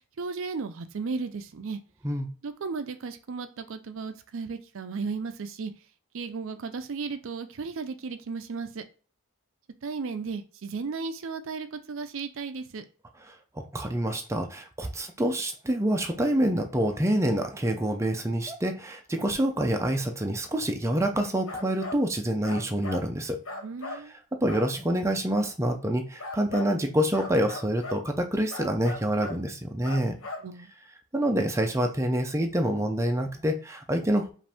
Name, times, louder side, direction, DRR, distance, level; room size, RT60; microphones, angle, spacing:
voice 1, 0.2-1.8 2.4-5.7 6.1-8.8 9.8-12.8 23.6-24.1 30.4-30.7, right 4 dB, 60° right, 0.5 m, -35 dB
voice 2, 13.7-23.4 23.9-30.2 31.1-34.3, right 1 dB, 15° right, 0.5 m, -27 dB
sound 1, 21.5-22.0 22.4-23.1 23.4-24.0 24.5-24.7 26.2-26.7 27.1-28.0 28.5-29.4 29.8-30.5, left 2 dB, 70° left, 0.8 m, -37 dB
5.2 x 2.6 x 3.4 m
head